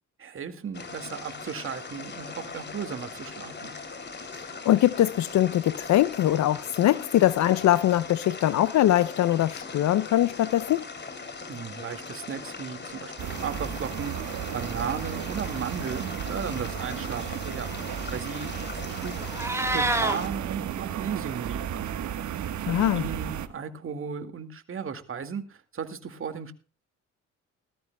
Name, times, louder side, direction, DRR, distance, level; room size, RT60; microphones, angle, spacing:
voice 1, 0.2-3.7 11.5-17.7 18.1-19.2 19.7-21.9 22.6-26.5, right 6 dB, 45° right, 2.1 m, -35 dB
sound 1, 0.7-20.3, left 4 dB, 35° left, 3.0 m, -40 dB
voice 2, 4.6-10.9 22.7-23.0, left 13 dB, 65° left, 0.6 m, -22 dB
sound 2, 13.2-23.5, right 9 dB, 70° right, 1.3 m, -34 dB
Meow, 19.2-20.2, right 2 dB, 10° right, 2.8 m, -26 dB
19.5 x 13.5 x 2.2 m
cardioid pair, 90°, 30 cm